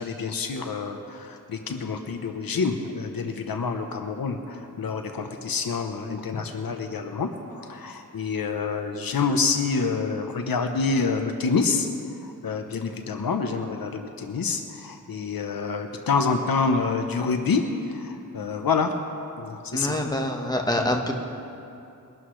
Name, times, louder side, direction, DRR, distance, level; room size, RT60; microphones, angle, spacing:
voice 1, 0.0-11.9 12.4-18.9 19.4-20.0, left 4 dB, 85° left, 5 dB, 0.9 m, -27 dB
voice 2, 19.7-21.1, left 1 dB, 10° left, 2 dB, 1.3 m, -25 dB
22.0 x 12.0 x 3.2 m, 2.6 s
wide cardioid pair, 95°, 34 cm